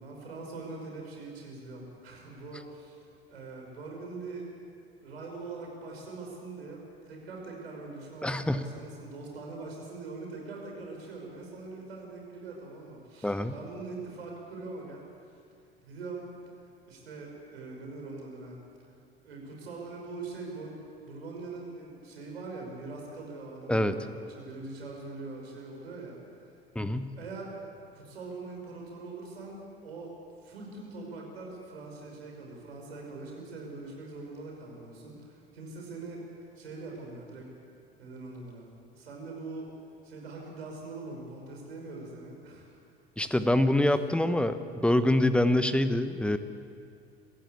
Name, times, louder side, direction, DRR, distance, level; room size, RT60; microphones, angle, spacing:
voice 1, 0.0-4.5 5.0-15.0 15.8-16.3 16.8-18.6 19.2-26.5 27.2-27.6 27.9-30.1 30.4-37.5 38.0-38.7 38.9-39.7 40.0-42.8 43.2-43.4, right 3 dB, 75° right, 0 dB, 5.7 m, -42 dB
voice 2, 8.2-8.6 13.2-13.5 23.7-23.9 26.7-27.2 43.2-46.4, left 1 dB, 5° left, 11 dB, 1.2 m, -25 dB
27.0 x 15.5 x 8.4 m, 2.5 s
figure-of-eight pair, 70°, 31 cm